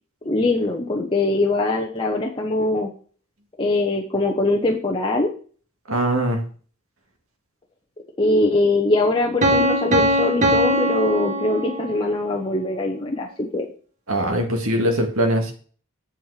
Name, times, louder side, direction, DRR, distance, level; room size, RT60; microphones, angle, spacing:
voice 1, 0.2-2.9 3.6-5.3 8.2-13.7, left 2 dB, 25° left, -1 dB, 1.0 m, -22 dB
voice 2, 5.9-6.4 14.1-15.5, right 1 dB, 70° right, 4 dB, 2.0 m, -21 dB
Piano, 9.4-12.2, equal, 35° right, 1.5 m, -21 dB
8.0 x 7.5 x 4.8 m, 0.42 s
head